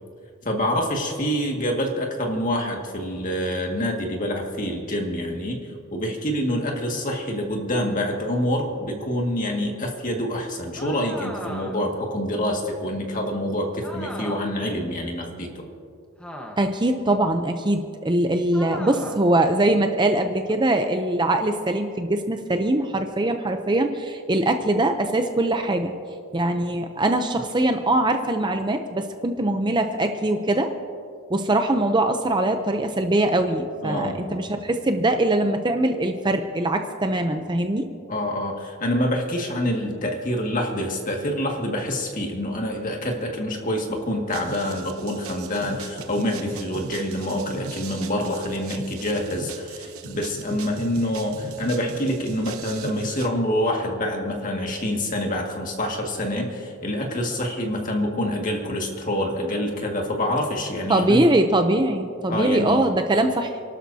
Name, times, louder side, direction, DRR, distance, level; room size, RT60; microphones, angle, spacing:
voice 1, 0.4-15.6 33.8-34.4 38.1-61.2 62.3-62.8, left 1 dB, 40° left, 1 dB, 2.0 m, -26 dB
sound 1, 10.8-12.0 13.8-14.6 16.2-16.9 18.5-19.3, equal, 5° left, 1.2 m, -37 dB
voice 2, 16.6-25.9 26.3-30.7 31.3-37.9 60.9-63.6, right 1 dB, 20° right, 6 dB, 0.6 m, -22 dB
sound 2, 44.3-53.3, right 4 dB, 75° right, 0.9 m, -39 dB
29.5 x 12.0 x 2.8 m, 2.3 s
head